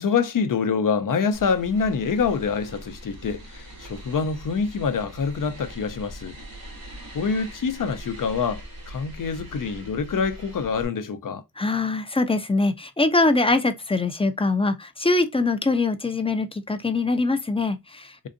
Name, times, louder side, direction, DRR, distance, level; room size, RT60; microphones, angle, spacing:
voice 1, 0.0-6.3 7.1-11.4, left 5 dB, 65° left, 0.6 m, -26 dB
sound 1, 1.3-10.9, right 1 dB, 85° right, 1.6 m, -41 dB
voice 2, 11.6-18.3, left 3 dB, 15° left, 0.5 m, -23 dB
3.8 x 2.6 x 2.5 m
wide cardioid pair, 115°, 34 cm